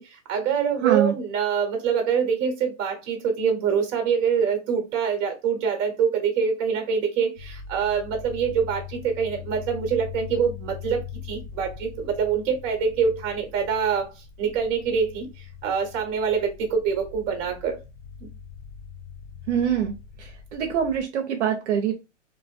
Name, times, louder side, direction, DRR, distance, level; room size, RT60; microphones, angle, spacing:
voice 1, 0.0-17.8, right 6 dB, 35° right, 1.0 m, -25 dB
voice 2, 0.8-1.1 19.5-19.9 20.2-21.9, right 9 dB, 65° right, 0.7 m, -24 dB
sound 1, 7.4-21.0, left 8 dB, 50° left, 0.6 m, -41 dB
2.6 x 2.4 x 2.4 m
hypercardioid pair, 125°, 38 cm